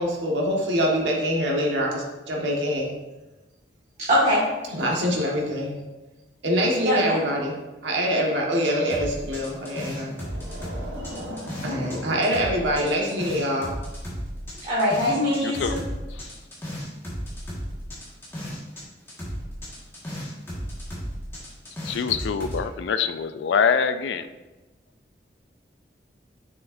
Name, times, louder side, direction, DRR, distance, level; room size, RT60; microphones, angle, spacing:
voice 1, 0.0-2.9 4.7-5.7 6.4-7.5 7.8-13.7, equal, 85° right, -2 dB, 1.5 m, -25 dB
voice 2, 4.1-4.4 6.8-7.0 14.6-15.7, left 1 dB, 40° right, -10 dB, 1.8 m, -21 dB
sound 1, 8.9-12.0 12.2-18.8 19.1-22.6, equal, 15° left, 1.6 m, -34 dB
voice 3, 15.4-15.8 21.9-24.3, left 6 dB, 80° left, 11 dB, 0.4 m, -24 dB
7.1 x 6.4 x 2.6 m, 1.1 s
head